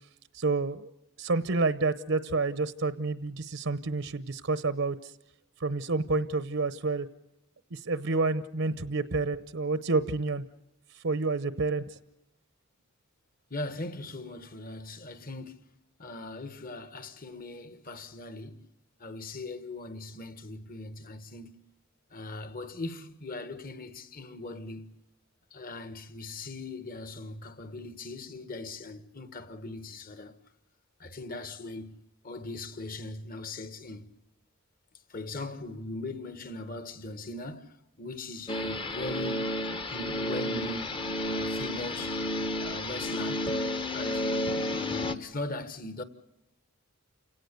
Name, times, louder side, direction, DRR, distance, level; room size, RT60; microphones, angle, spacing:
voice 1, 0.3-0.9 1.2-5.1 5.6-7.1 7.7-10.4 11.0-12.0, right 3 dB, 65° right, 0.9 m, -29 dB
voice 2, 13.5-15.6 16.0-18.7 19.0-21.6 22.1-25.0 25.5-30.4 31.0-32.0 32.2-34.1 35.1-39.5 39.9-42.2 42.6-43.5 43.9-46.0, left 2 dB, 40° left, 1.5 m, -40 dB
sound 1, 38.5-45.1, left 1 dB, 25° left, 1.0 m, -31 dB
29.5 x 17.5 x 6.8 m
head